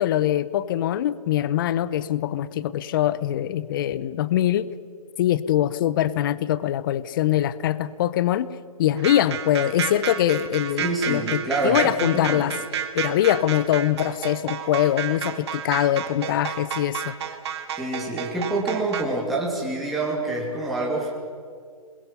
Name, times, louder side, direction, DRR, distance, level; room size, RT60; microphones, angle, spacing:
voice 1, 0.0-4.7 5.2-8.5 8.8-12.5 12.9-17.1, left 12 dB, 35° left, 17 dB, 0.7 m, -23 dB
sound 1, 9.0-19.0, right 9 dB, 45° right, 1.9 m, -31 dB
voice 2, 10.8-12.4 17.8-21.1, right 2 dB, ahead, -5 dB, 2.8 m, -27 dB
28.0 x 22.0 x 5.6 m, 2.2 s
hypercardioid pair, 145°, 19 cm